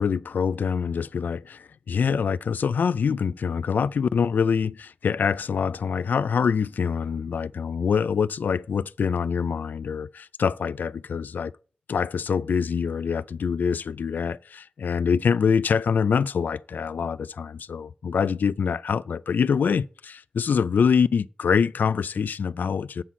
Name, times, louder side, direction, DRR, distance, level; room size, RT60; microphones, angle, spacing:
voice 1, 0.0-11.5 11.9-23.0, left 6 dB, 85° left, 0.3 m, -25 dB
9.3 x 4.2 x 7.2 m
wide cardioid pair, 95°, 3 cm